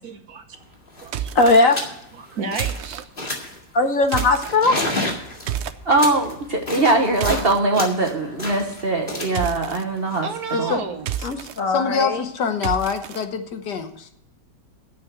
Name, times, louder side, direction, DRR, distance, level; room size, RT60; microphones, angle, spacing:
voice 1, 0.0-0.6 1.0-1.4 2.2-3.1 10.2-11.1, right 5 dB, 60° right, 6 dB, 1.6 m, -31 dB
sound 1, 0.6-0.7 0.9-1.2 1.6-2.0 2.3-2.8 3.2-3.6 4.1-7.5 7.7-10.8, left 1 dB, 30° left, 2.2 m, -30 dB
sound 2, 1.0-1.6 2.5-3.0 4.0-4.6 5.5-5.8 6.8-7.6 9.3-9.8 10.9-11.6 12.6-13.2, right 10 dB, 85° right, 0.6 m, -30 dB
voice 2, 1.3-1.8 3.7-4.8 11.2-12.3, left 2 dB, 55° left, 5 dB, 1.5 m, -18 dB
voice 3, 5.8-10.3 10.6-10.7, right 2 dB, 40° right, 3 dB, 1.1 m, -21 dB
voice 4, 11.7-14.1, left 6 dB, 70° left, 7 dB, 1.7 m, -25 dB
9.4 x 7.3 x 8.9 m, 0.75 s
omnidirectional pair, 1.9 m